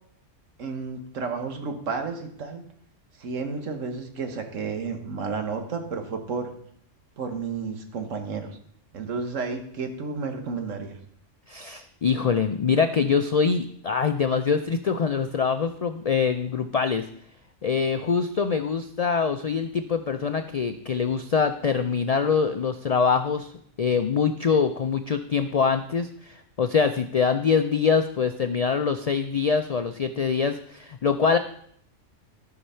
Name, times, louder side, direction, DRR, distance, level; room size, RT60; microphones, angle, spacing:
voice 1, 0.6-2.6 3.2-6.5 7.2-8.6 8.9-11.0, right 4 dB, 85° right, 5 dB, 1.5 m, -32 dB
voice 2, 11.5-17.1 17.6-23.5 23.8-31.4, left 6 dB, 75° left, 8 dB, 0.3 m, -24 dB
13.5 x 4.8 x 5.6 m, 0.65 s
omnidirectional pair, 1.3 m